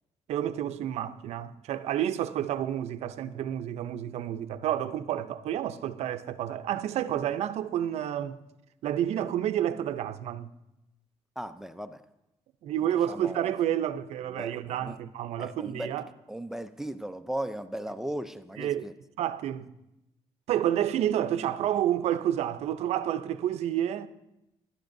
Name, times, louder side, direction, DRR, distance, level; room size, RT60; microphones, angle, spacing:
voice 1, 0.3-8.4 8.8-10.5 12.6-16.1 18.6-18.8 19.2-19.7 20.5-24.1, right 11 dB, 75° right, 0.6 m, -29 dB
voice 2, 11.4-12.0 12.8-13.5 14.3-15.0 15.4-16.0 16.3-18.9, right 1 dB, 5° right, 0.4 m, -37 dB
20.5 x 11.5 x 2.6 m
cardioid pair, 140°, 11 cm